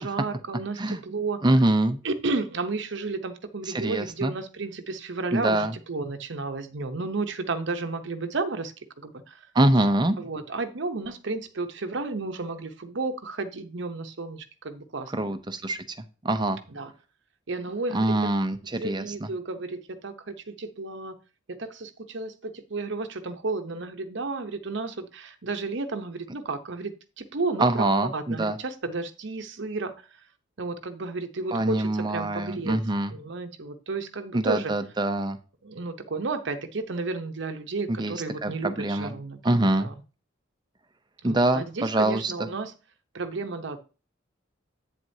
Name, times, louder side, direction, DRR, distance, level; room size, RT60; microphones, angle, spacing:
voice 1, 0.0-1.4 2.0-9.5 10.2-15.3 16.7-16.9 17.5-18.1 18.7-21.1 21.6-27.9 28.1-29.9 30.6-32.8 33.1-34.7 35.6-39.9 41.2-42.7 43.1-43.8, right 3 dB, 65° right, 0.9 m, -32 dB
voice 2, 1.4-2.0 3.7-4.3 5.3-5.7 9.5-10.2 15.1-15.8 16.2-16.6 17.9-19.0 27.6-28.6 31.5-33.1 34.3-35.4 37.9-38.2 38.4-39.1 39.4-39.9 41.2-42.3, right 1 dB, 25° right, 0.7 m, -24 dB
8.6 x 7.7 x 2.8 m
head